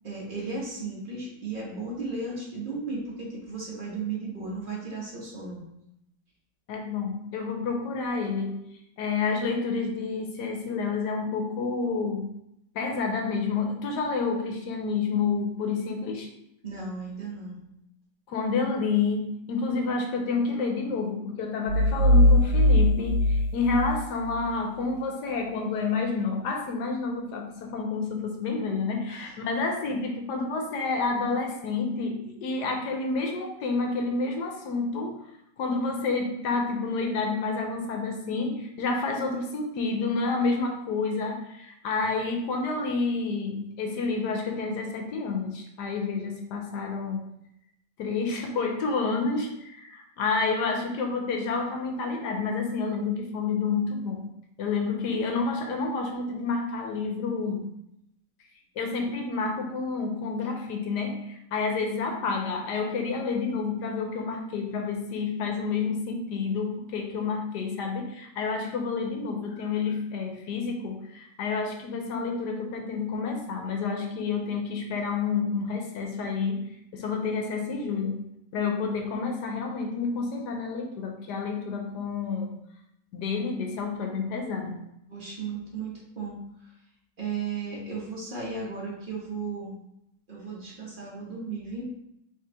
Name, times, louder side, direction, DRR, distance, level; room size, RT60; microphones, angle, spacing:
voice 1, 0.0-5.6 16.6-17.6 29.1-29.3 85.1-86.4 87.2-89.7 90.3-91.8, right 4 dB, 30° right, -5 dB, 1.4 m, -35 dB
voice 2, 6.7-8.6 9.0-12.3 12.7-16.3 18.3-35.2 35.6-47.2 48.0-54.2 54.6-57.7 58.8-76.6 76.9-78.3 78.5-82.6 83.1-84.8, left 4 dB, 70° left, 3 dB, 1.2 m, -29 dB
sound 1, 21.7-24.5, left 1 dB, 85° right, 1.4 m, -21 dB
4.8 x 3.2 x 3.4 m, 0.80 s
omnidirectional pair, 2.0 m